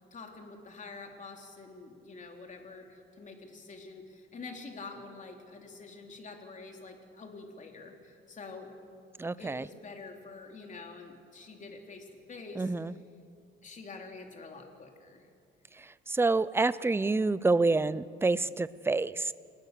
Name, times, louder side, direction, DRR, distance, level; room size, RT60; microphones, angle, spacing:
voice 1, 0.1-8.7 9.4-12.7 13.6-15.3, left 3 dB, 35° left, 2 dB, 3.3 m, -47 dB
voice 2, 9.2-9.6 12.6-12.9 16.1-19.3, right 3 dB, 10° right, 17 dB, 0.5 m, -27 dB
29.5 x 19.0 x 6.7 m, 2.2 s
cardioid pair, 130°, 21 cm